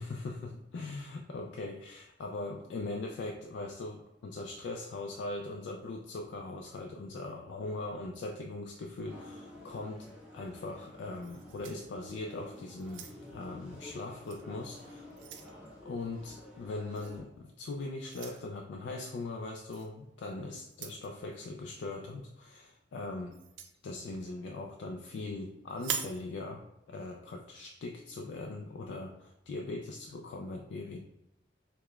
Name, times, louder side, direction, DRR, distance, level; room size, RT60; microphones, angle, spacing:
voice 1, 0.0-15.1 15.8-23.4 23.8-31.0, left 2 dB, 70° left, 2 dB, 0.3 m, -40 dB
sound 1, 9.1-17.2, left 1 dB, 5° right, 0.7 m, -51 dB
sound 2, 11.2-12.4 12.8-13.4 14.2-14.4 14.8-15.6 17.0-17.2 18.1-18.4 19.7-19.9 20.7-21.1 23.3-23.8 25.7-26.2, right 7 dB, 75° right, 0.3 m, -41 dB
4.7 x 2.2 x 2.2 m, 0.88 s
head